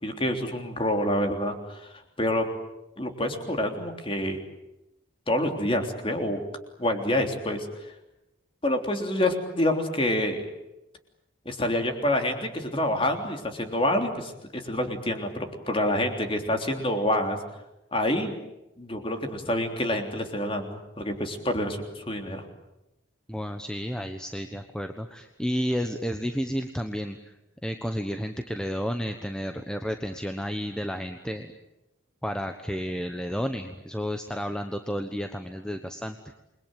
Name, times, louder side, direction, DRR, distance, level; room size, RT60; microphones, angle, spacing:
voice 1, 0.0-1.9 2.2-2.4 3.0-4.4 5.3-6.4 6.8-7.7 8.6-10.4 11.4-17.4 17.9-18.3 18.8-22.4, left 1 dB, 25° left, 5 dB, 3.3 m, -27 dB
voice 2, 23.3-27.3 27.6-31.5 32.2-36.2, equal, 5° left, 6 dB, 1.2 m, -31 dB
29.0 x 22.5 x 9.1 m, 0.93 s
head